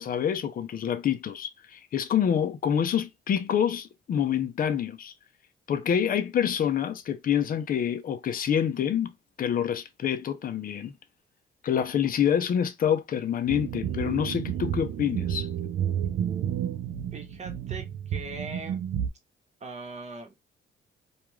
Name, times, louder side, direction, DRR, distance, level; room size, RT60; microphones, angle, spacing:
voice 1, 0.0-5.1 5.7-9.1 9.4-10.9 11.6-15.5, left 8 dB, 45° left, 0.5 m, -27 dB
sound 1, 13.5-19.1, right 9 dB, 70° right, 0.5 m, -31 dB
voice 2, 17.1-18.8 19.6-20.4, right 3 dB, 35° right, 1.0 m, -40 dB
2.4 x 2.3 x 3.0 m
cardioid pair, 90°, 20 cm